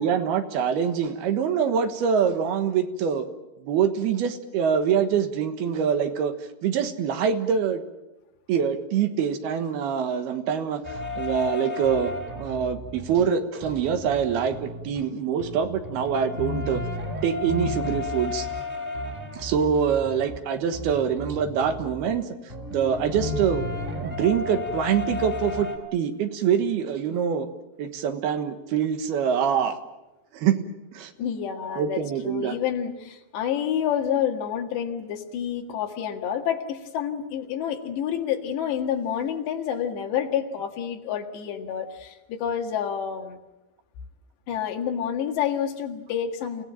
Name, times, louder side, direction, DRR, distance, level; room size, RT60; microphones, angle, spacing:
voice 1, 0.0-3.3 3.6-6.3 6.6-7.8 8.5-16.8 17.2-18.5 19.3-22.2 22.7-23.6 23.9-25.7 25.9-27.5 27.8-29.8 30.3-30.6 30.9-31.1 31.8-32.6, right 7 dB, 70° right, 8 dB, 3.2 m, -25 dB
sound 1, 10.8-13.3 13.6-15.0 15.4-25.8, left 3 dB, 15° right, 3.5 m, -33 dB
voice 2, 31.2-43.4 44.5-46.6, left 9 dB, 85° left, 3 dB, 3.9 m, -28 dB
28.5 x 17.5 x 9.0 m, 1.0 s
omnidirectional pair, 4.8 m